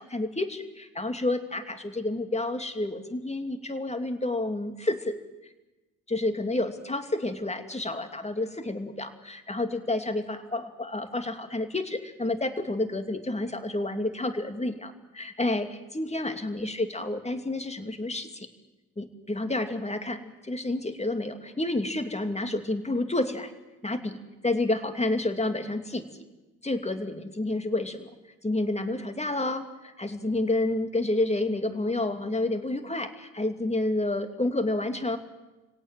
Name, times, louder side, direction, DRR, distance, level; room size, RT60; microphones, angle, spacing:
voice 1, 0.0-5.2 6.1-18.5 19.0-23.5 23.8-26.0 26.6-28.1 28.4-35.2, left 2 dB, 15° left, 8 dB, 2.8 m, -29 dB
28.5 x 17.5 x 7.8 m, 1.1 s
hypercardioid pair, 50°, 41 cm